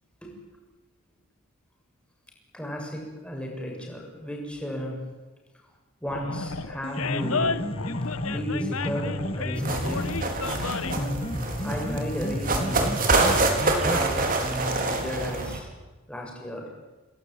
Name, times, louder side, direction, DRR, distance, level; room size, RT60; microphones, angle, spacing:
voice 1, 2.5-5.1 6.0-7.8 8.3-10.2 10.9-11.3 11.6-13.0 13.8-15.7 16.1-16.7, equal, 5° left, 0 dB, 7.2 m, -34 dB
Animal, 6.1-11.1, left 4 dB, 75° left, 1.3 m, -32 dB
Piano, 6.6-14.6, equal, 25° left, 2.0 m, -33 dB
sound 1, 9.5-15.6, right 2 dB, 40° right, 4.5 m, -26 dB
29.5 x 20.5 x 9.5 m, 1.2 s
head